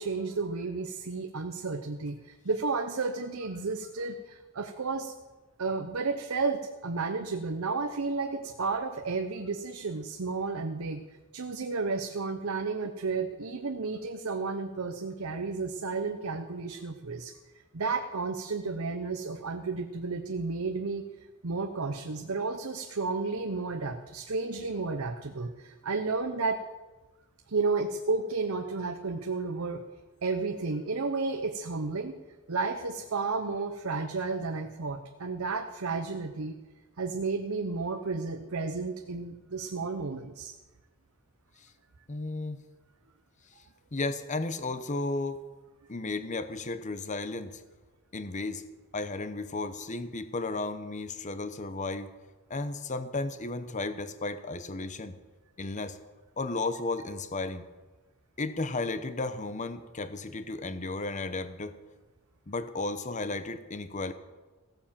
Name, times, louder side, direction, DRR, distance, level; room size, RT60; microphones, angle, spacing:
voice 1, 0.0-5.1 5.6-11.0 11.3-17.3 17.7-21.1 21.4-26.6 27.5-29.8 30.2-32.2 32.5-36.5 37.0-40.5, right 4 dB, 75° right, 6 dB, 0.8 m, -32 dB
voice 2, 42.1-42.6 43.9-45.4 45.9-47.6 48.1-48.6 48.9-52.1 52.5-55.1 55.6-56.0 56.4-57.7 58.4-61.7 62.5-64.1, left 3 dB, 35° left, 11 dB, 0.8 m, -34 dB
16.0 x 9.0 x 7.4 m, 1.2 s
head